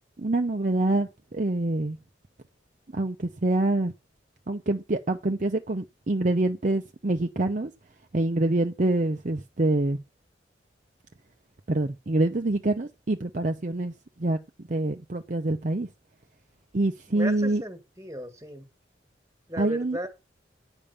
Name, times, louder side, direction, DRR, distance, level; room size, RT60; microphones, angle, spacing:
voice 1, 0.2-2.0 2.9-3.9 4.5-7.7 8.1-10.0 11.7-13.9 14.2-14.4 14.7-15.9 16.7-17.6 19.6-20.0, right 2 dB, 40° right, 0.6 m, -26 dB
voice 2, 17.1-18.6 19.5-20.1, equal, 15° right, 1.7 m, -35 dB
9.9 x 5.2 x 6.9 m
head